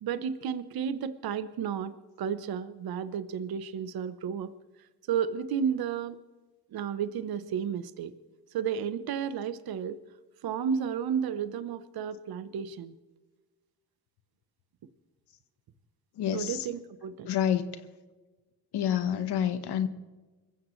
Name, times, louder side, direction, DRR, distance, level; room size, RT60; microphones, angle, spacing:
voice 1, 0.0-1.9 2.2-4.5 5.1-6.2 6.7-8.1 8.5-10.0 10.4-12.9 16.3-17.3, right 7 dB, 65° right, 12 dB, 0.9 m, -32 dB
voice 2, 16.2-16.7 17.2-17.6 18.7-19.9, left 9 dB, 75° left, 10 dB, 1.2 m, -28 dB
26.0 x 15.5 x 3.2 m, 1.2 s
cardioid pair, 125°, 40 cm